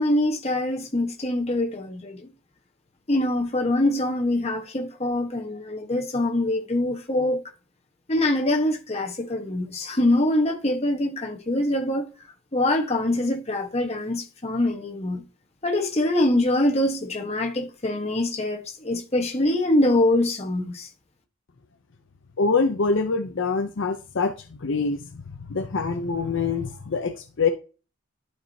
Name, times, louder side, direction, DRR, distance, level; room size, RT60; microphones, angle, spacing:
voice 1, 0.0-2.3 3.1-7.4 8.1-12.0 12.5-15.2 15.6-20.9, left 1 dB, 30° left, 1.2 m, -24 dB
voice 2, 22.4-24.3 24.6-25.0 25.5-27.5, left 4 dB, 60° left, 0.6 m, -24 dB
11.5 x 4.8 x 2.8 m
head